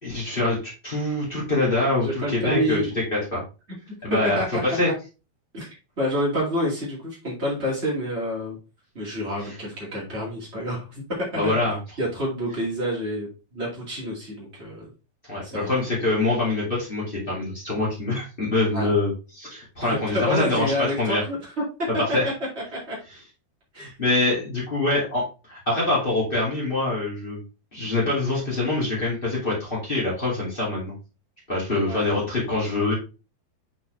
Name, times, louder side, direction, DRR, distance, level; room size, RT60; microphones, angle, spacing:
voice 1, 0.0-2.8 3.1-3.4 4.0-4.4 4.7-4.9 9.4-9.5 11.3-11.8 15.3-21.2 22.1-22.2 23.7-27.4 27.7-30.9 31.5-32.9, left 2 dB, 70° left, -6 dB, 0.5 m, -25 dB
voice 2, 1.9-2.9 4.1-4.9 5.5-5.7 6.0-8.6 8.9-11.6 12.0-14.9 15.4-15.7 18.7-18.9 19.8-21.5 22.7-22.9 23.7-24.0 31.7-32.2, equal, 70° right, -5 dB, 0.6 m, -28 dB
8.1 x 4.2 x 3.2 m, 0.31 s
omnidirectional pair, 5.5 m